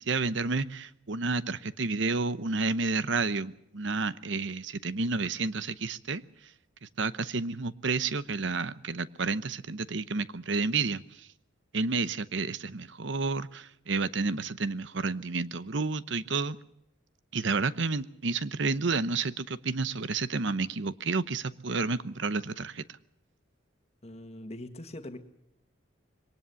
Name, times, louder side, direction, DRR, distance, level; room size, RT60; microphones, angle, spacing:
voice 1, 0.0-6.2 7.0-11.3 11.7-16.6 17.3-22.8, right 4 dB, 60° right, 15 dB, 0.9 m, -30 dB
voice 2, 24.0-25.2, left 1 dB, 30° left, 7 dB, 1.8 m, -42 dB
23.0 x 19.0 x 7.0 m, 0.77 s
head